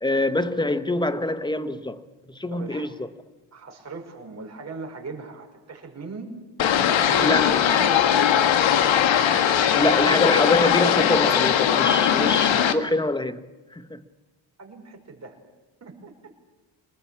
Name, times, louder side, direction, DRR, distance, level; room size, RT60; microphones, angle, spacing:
voice 1, 0.0-2.0 2.3-3.1 7.2-7.6 9.8-13.5 13.7-14.0, left 1 dB, 10° left, 1.2 m, -25 dB
voice 2, 2.5-2.9 3.5-9.1 14.6-15.4 15.8-16.1, right 3 dB, 35° right, 5.7 m, -39 dB
sound 1, 6.6-12.7, left 9 dB, 75° left, 1.8 m, -20 dB
26.0 x 20.0 x 8.6 m
cardioid pair, 115°, 46 cm